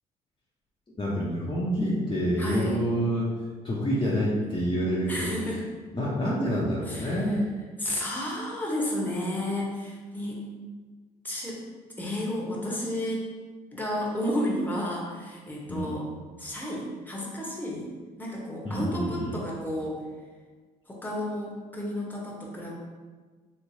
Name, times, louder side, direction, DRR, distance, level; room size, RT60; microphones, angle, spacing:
voice 1, 0.9-3.3 3.6-5.3 5.9-7.5 15.7-16.0 18.6-19.3, equal, 30° left, -7 dB, 0.8 m, -27 dB
voice 2, 2.4-2.8 5.1-5.6 6.9-7.4 7.8-10.4 11.2-11.6 12.0-13.3 13.7-16.1 16.4-17.9 18.2-20.0 20.9-22.7, left 1 dB, 10° left, -3 dB, 1.0 m, -32 dB
3.1 x 3.0 x 2.8 m, 1.4 s
supercardioid pair, 55°, 17 cm